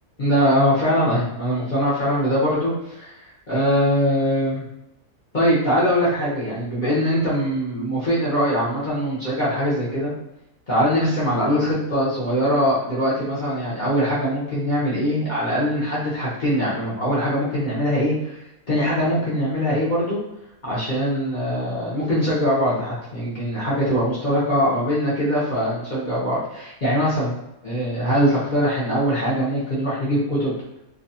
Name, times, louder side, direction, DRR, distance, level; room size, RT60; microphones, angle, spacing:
voice 1, 0.2-4.7 5.3-10.1 10.7-20.2 20.6-27.3 27.6-30.5, equal, 45° left, -9 dB, 0.6 m, -22 dB
2.6 x 2.2 x 2.6 m, 0.87 s
omnidirectional pair, 1.6 m